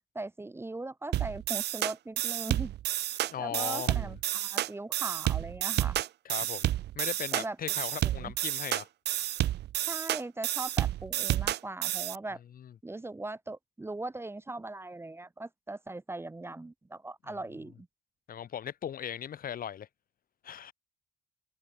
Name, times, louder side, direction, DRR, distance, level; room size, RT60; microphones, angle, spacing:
voice 1, 0.2-2.7 3.2-6.0 7.3-7.6 8.0-8.3 9.8-12.4 12.8-17.9, right 2 dB, 15° right, 1.7 m, -40 dB
sound 1, 1.1-12.2, right 14 dB, 85° right, 1.3 m, -30 dB
voice 2, 3.3-4.1 6.3-8.9 12.6-12.7 17.3-17.4 18.3-19.9 20.4-20.7, left 9 dB, 60° left, 3.4 m, -38 dB
cardioid pair, 120°, 17 cm